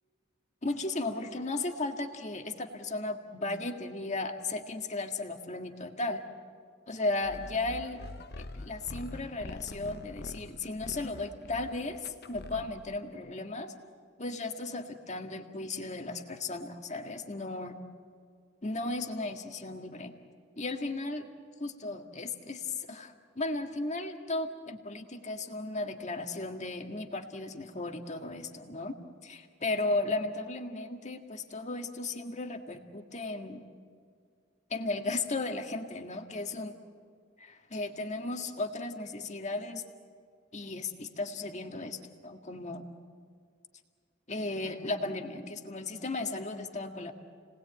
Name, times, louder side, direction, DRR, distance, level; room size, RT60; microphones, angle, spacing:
voice 1, 0.6-6.2 6.9-8.0 8.4-13.7 14.2-17.8 18.6-20.2 20.6-21.3 21.6-33.6 34.7-36.8 37.4-39.9 40.5-42.9 44.3-47.1, left 2 dB, 35° left, 5 dB, 1.8 m, -35 dB
sound 1, 7.2-13.0, left 2 dB, 50° left, 0.9 m, -45 dB
30.0 x 19.5 x 8.9 m, 2.1 s
head